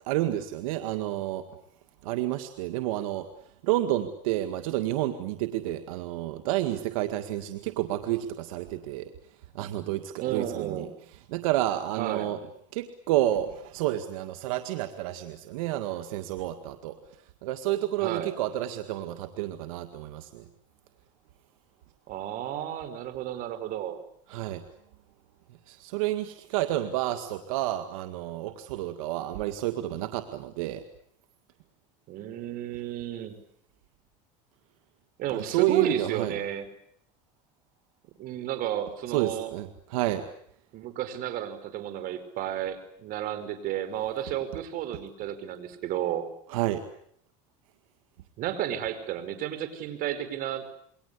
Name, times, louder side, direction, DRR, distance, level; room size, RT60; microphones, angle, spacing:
voice 1, 0.1-1.4 2.0-3.3 3.6-9.1 9.5-10.9 11.3-12.4 12.7-17.0 17.4-20.5 24.3-24.6 25.7-30.8 35.3-36.4 39.1-40.3 46.5-46.8, right 14 dB, 85° right, 8 dB, 1.9 m, -30 dB
voice 2, 10.2-10.9 12.0-12.3 18.0-18.3 22.1-24.0 32.1-33.3 35.2-36.7 38.2-39.5 40.7-46.3 48.4-50.7, right 11 dB, 55° right, 11 dB, 5.1 m, -32 dB
28.0 x 22.5 x 8.4 m, 0.67 s
supercardioid pair, 120°, 17 cm